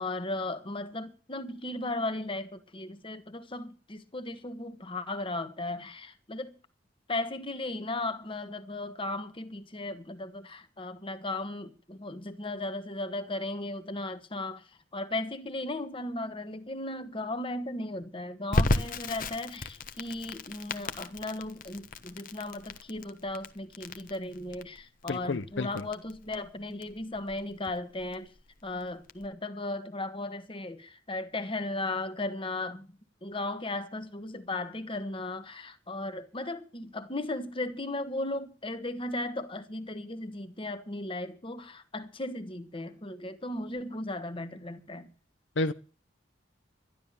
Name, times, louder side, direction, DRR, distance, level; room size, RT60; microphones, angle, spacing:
voice 1, 0.0-6.6 7.1-14.6 14.9-28.3 28.6-32.9 33.2-45.1, left 2 dB, 30° left, 1.4 m, -36 dB
Crackle, 18.5-29.3, left 2 dB, 50° left, 1.2 m, -34 dB
voice 2, 25.1-25.8 45.6-45.7, left 2 dB, 75° left, 0.7 m, -30 dB
12.5 x 11.5 x 7.0 m
head